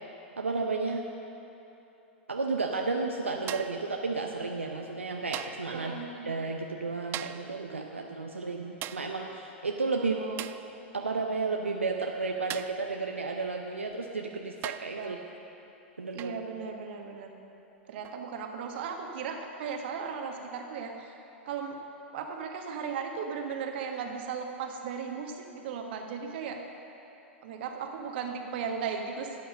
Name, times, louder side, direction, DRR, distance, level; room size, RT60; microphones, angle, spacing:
voice 1, 0.4-1.0 2.3-10.2 10.9-15.2 16.0-16.4, right 3 dB, 85° right, 2 dB, 0.7 m, -32 dB
sound 1, 3.5-3.9 5.3-5.7 7.1-7.5 8.8-9.1 10.4-10.7 12.5-12.8 13.9-14.0 14.6-15.0 16.2-16.4 18.0-18.2, right 13 dB, 35° right, 0.4 m, -39 dB
voice 2, 5.7-6.5 10.0-10.5 15.0-15.2 16.1-17.3 17.9-21.2 21.4-21.8 22.1-26.6 27.4-29.4, right 6 dB, 55° right, 3 dB, 1.4 m, -36 dB
12.5 x 8.8 x 6.6 m, 3.0 s
figure-of-eight pair, 95°, 7 cm